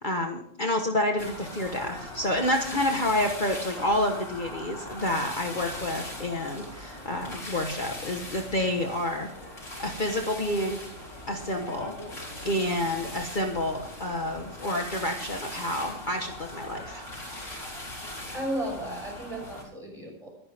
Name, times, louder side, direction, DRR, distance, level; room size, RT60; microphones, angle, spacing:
voice 1, 0.0-9.5 9.8-10.8 11.3-11.9 12.4-17.0, left 1 dB, 40° left, 3 dB, 1.4 m, -29 dB
sound 1, 1.2-19.6, left 1 dB, 70° left, 5.0 m, -40 dB
voice 2, 18.3-20.3, right 1 dB, 25° right, -1 dB, 6.3 m, -34 dB
25.0 x 10.0 x 3.5 m, 0.68 s
omnidirectional pair, 1.4 m